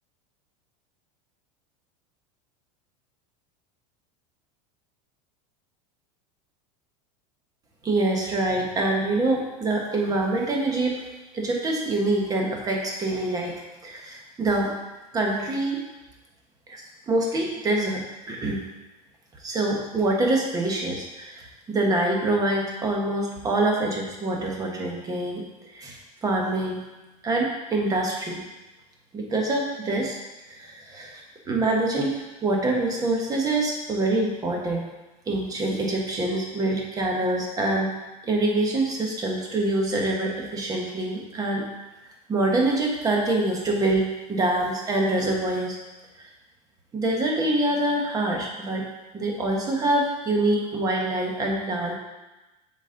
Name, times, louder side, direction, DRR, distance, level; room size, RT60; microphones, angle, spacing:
voice 1, 7.8-11.0 11.3-13.5 13.8-14.7 15.1-15.8 16.7-18.0 18.3-18.6 19.4-25.4 25.7-26.8 27.2-28.4 29.1-30.2 30.5-31.2 31.5-34.8 35.3-37.9 38.2-41.6 42.3-45.8 46.9-48.8 49.1-52.0, right 2 dB, 20° right, 0 dB, 1.2 m, -25 dB
7.1 x 4.2 x 3.9 m, 1.1 s
supercardioid pair, 145°, 19 cm